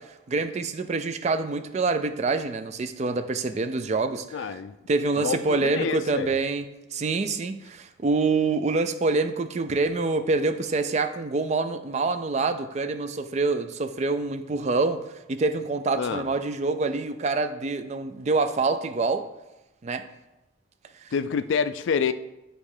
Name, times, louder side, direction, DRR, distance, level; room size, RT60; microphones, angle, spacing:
voice 1, 0.0-4.6 4.9-19.3 19.8-20.0 21.0-21.1, right 3 dB, 35° right, 9 dB, 0.3 m, -26 dB
voice 2, 4.3-4.7 5.2-6.3 16.0-16.3 21.1-22.1, left 6 dB, 65° left, 13 dB, 0.3 m, -27 dB
8.6 x 3.1 x 4.8 m, 0.96 s
head